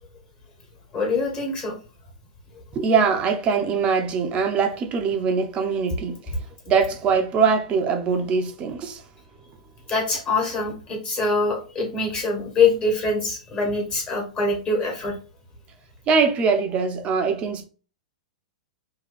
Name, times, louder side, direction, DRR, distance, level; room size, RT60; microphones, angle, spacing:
voice 1, 0.9-1.7 9.9-15.1, left 3 dB, 25° left, 1.5 m, -24 dB
voice 2, 2.7-6.2 6.7-9.0 16.1-17.6, right 5 dB, 30° right, 0.7 m, -22 dB
2.9 x 2.3 x 4.1 m
hypercardioid pair, 110°, 4 cm